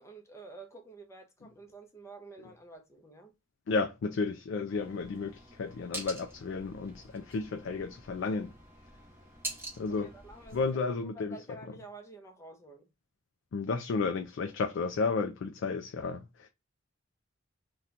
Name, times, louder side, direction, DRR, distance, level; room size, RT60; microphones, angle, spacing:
voice 1, 0.0-3.3 9.9-12.9, right 2 dB, 15° left, 0.6 m, -50 dB
voice 2, 3.7-8.5 9.8-10.1 10.5-11.4 13.5-16.5, left 4 dB, 60° left, 0.3 m, -32 dB
sound 1, 4.7-10.7, right 1 dB, 10° right, 0.9 m, -46 dB
2.8 x 2.2 x 3.7 m
head